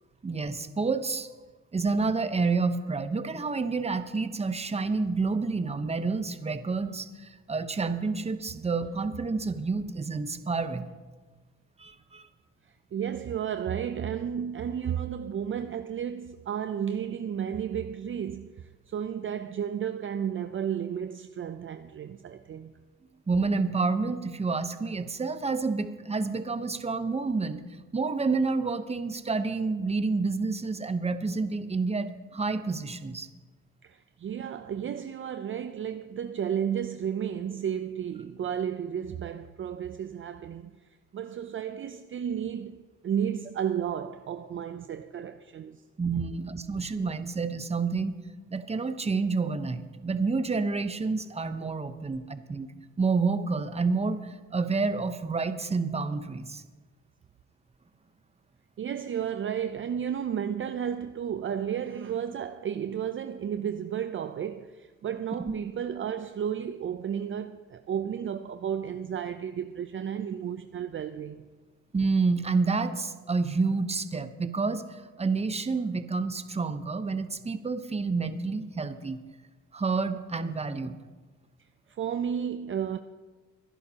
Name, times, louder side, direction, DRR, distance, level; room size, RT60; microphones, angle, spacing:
voice 1, 0.2-1.3 1.7-10.8 11.8-12.3 23.3-27.6 27.9-33.3 46.0-48.2 48.5-52.7 53.0-56.6 71.9-79.2 79.7-81.0, right 4 dB, 20° right, 0.9 m, -29 dB
voice 2, 12.9-22.7 33.8-45.8 58.8-71.5 81.9-83.0, right 8 dB, 40° right, 0.5 m, -33 dB
22.5 x 11.0 x 2.9 m
cardioid pair, 90°, 30 cm